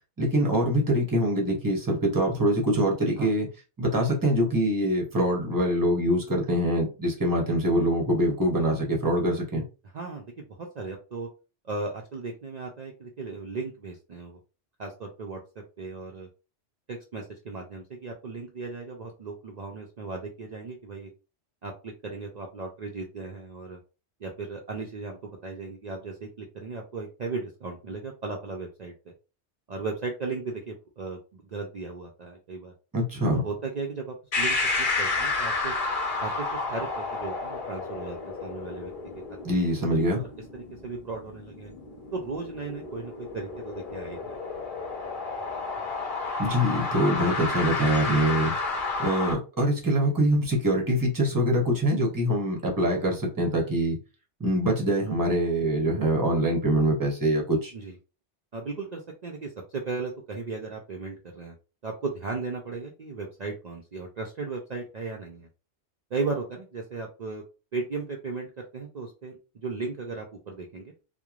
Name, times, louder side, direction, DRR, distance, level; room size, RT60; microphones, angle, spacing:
voice 1, 0.2-3.5 3.8-9.6 32.9-33.4 39.4-40.2 46.4-48.5 49.0-54.0 54.4-57.7, equal, 20° right, 0 dB, 0.7 m, -24 dB
voice 2, 9.9-11.3 11.6-14.4 14.8-15.4 15.8-16.3 16.9-21.1 21.6-23.8 24.2-28.9 29.7-32.7 33.4-35.7 36.2-38.9 40.2-40.3 40.5-41.7 42.1-44.4 46.8-46.9 57.7-58.0 58.5-61.5 61.8-65.5 66.1-67.4 67.7-70.9, right 4 dB, 60° right, 0 dB, 0.4 m, -36 dB
sound 1, 34.3-49.3, left 3 dB, 50° left, 0.9 m, -31 dB
3.0 x 2.1 x 2.4 m, 0.31 s
omnidirectional pair, 1.2 m